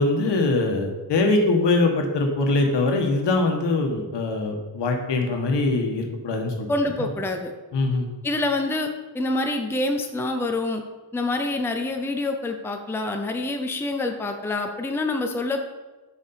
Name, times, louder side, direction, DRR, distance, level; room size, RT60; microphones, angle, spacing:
voice 1, 0.0-6.7 7.0-7.1 7.7-8.1, left 2 dB, 75° left, 3 dB, 1.4 m, -22 dB
voice 2, 6.7-7.5 8.2-8.9 9.1-10.8 11.1-15.6, left 2 dB, 5° left, 4 dB, 0.5 m, -26 dB
6.8 x 5.1 x 5.5 m, 1.2 s
wide cardioid pair, 150°, 43 cm